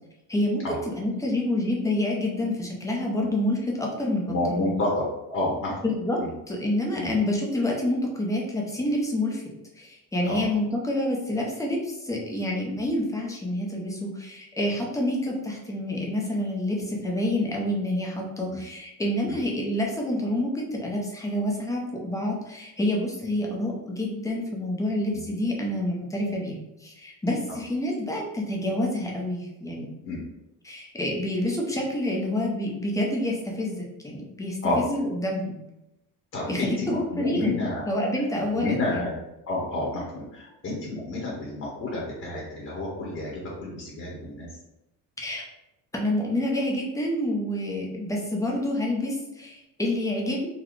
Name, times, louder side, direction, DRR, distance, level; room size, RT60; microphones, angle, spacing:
voice 1, 0.3-4.8 5.8-6.2 6.5-9.4 9.8-29.9 30.6-35.6 36.5-37.6 37.9-39.0 45.2-45.4 45.9-50.5, left 1 dB, 10° left, -1 dB, 0.6 m, -28 dB
voice 2, 4.3-5.9 6.2-6.3 6.9-7.1 10.3-10.4 19.2-19.3 30.0-30.2 34.6-34.8 36.3-37.8 38.6-39.2 39.5-44.5, left 2 dB, 35° left, -4 dB, 1.0 m, -30 dB
4.0 x 2.2 x 3.1 m, 0.92 s
cardioid pair, 140°, 40 cm